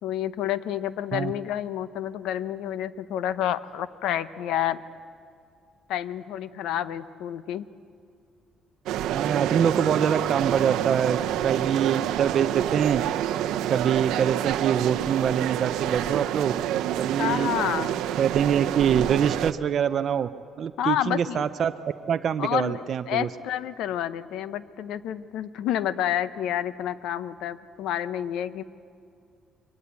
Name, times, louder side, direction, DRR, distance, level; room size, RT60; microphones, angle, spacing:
voice 1, 0.0-4.8 5.9-7.7 17.2-18.0 20.8-21.4 22.4-22.8 23.1-28.6, left 11 dB, 80° left, 14 dB, 0.7 m, -29 dB
sound 1, 8.9-19.5, right 11 dB, 90° right, 0.7 m, -28 dB
voice 2, 9.1-13.0 13.7-16.5 17.0-17.5 18.2-20.3 20.6-21.7 22.1-23.3, right 8 dB, 45° right, 8 dB, 0.5 m, -24 dB
23.0 x 18.5 x 8.2 m, 2.4 s
cardioid pair, 155°, 0 cm